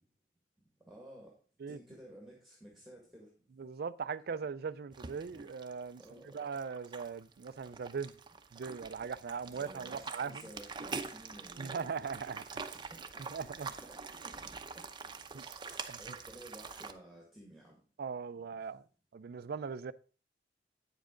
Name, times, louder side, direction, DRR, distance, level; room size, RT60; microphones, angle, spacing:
voice 1, 0.9-1.4 1.7-3.3 6.0-6.4 9.5-11.9 12.7-14.9 15.6-17.8 18.6-18.7, right 1 dB, ahead, 1.8 m, -54 dB
voice 2, 3.6-6.0 6.3-8.1 8.5-10.4 11.6-12.6 13.3-13.7 15.3-15.6 15.9-16.0 18.0-18.8 19.1-19.9, right 5 dB, 60° right, 0.4 m, -40 dB
sound 1, 4.9-16.9, right 4 dB, 25° right, 0.7 m, -45 dB
9.0 x 7.3 x 3.8 m
head